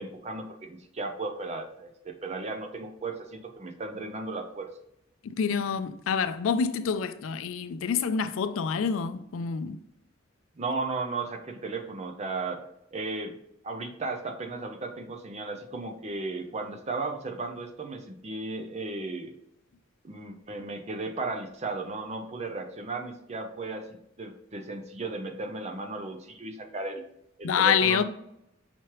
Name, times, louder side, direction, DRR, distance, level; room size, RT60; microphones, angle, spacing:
voice 1, 0.0-4.7 10.6-12.6 12.9-13.3 13.6-19.3 20.0-27.0 27.4-28.0, right 3 dB, 35° right, 0.5 m, -35 dB
voice 2, 5.2-9.8 27.4-28.0, left 6 dB, 75° left, 0.4 m, -27 dB
5.9 x 3.1 x 3.0 m
head